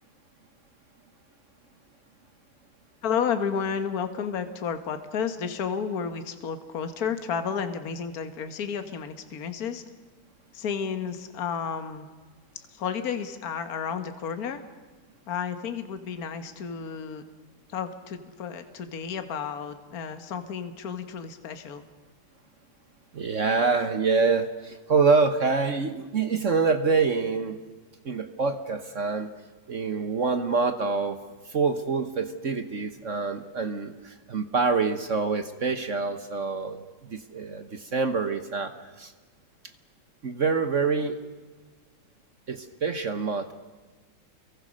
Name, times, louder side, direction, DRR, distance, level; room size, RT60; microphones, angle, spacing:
voice 1, 3.0-9.8 10.5-12.1 12.7-14.6 15.3-17.2 17.7-21.8, left 7 dB, 45° left, 8 dB, 1.8 m, -32 dB
voice 2, 23.1-27.6 28.0-29.3 29.7-31.2 31.5-39.1 40.2-41.2 42.5-43.5, right 4 dB, 45° right, 9 dB, 1.2 m, -26 dB
29.5 x 23.0 x 6.5 m, 1.4 s
omnidirectional pair, 2.3 m